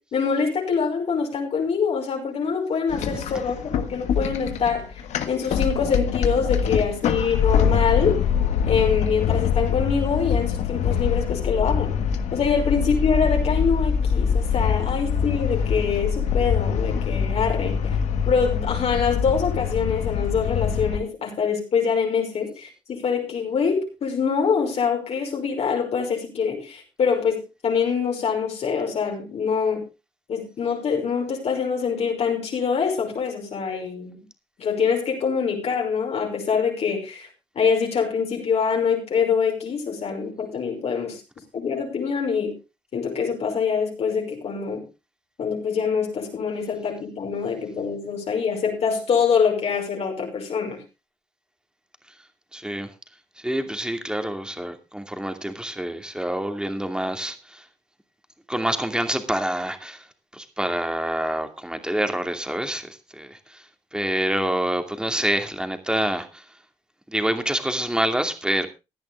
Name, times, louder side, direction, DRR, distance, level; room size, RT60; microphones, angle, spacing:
voice 1, 0.0-5.0 5.3-8.2 8.7-12.0 12.3-18.0 18.3-29.8 30.3-34.2 34.6-37.3 37.6-41.2 41.5-42.5 42.9-44.8 45.4-50.8, left 6 dB, 65° left, 1 dB, 5.5 m, -24 dB
sound 1, 2.9-21.0, left 7 dB, 80° left, 1.5 m, -24 dB
voice 2, 52.5-52.9 53.4-57.7 58.5-60.1 60.3-63.6 63.9-66.4 67.1-68.7, right 1 dB, 5° right, 6 dB, 2.6 m, -27 dB
16.5 x 10.5 x 3.5 m, 0.28 s
supercardioid pair, 70°, 12 cm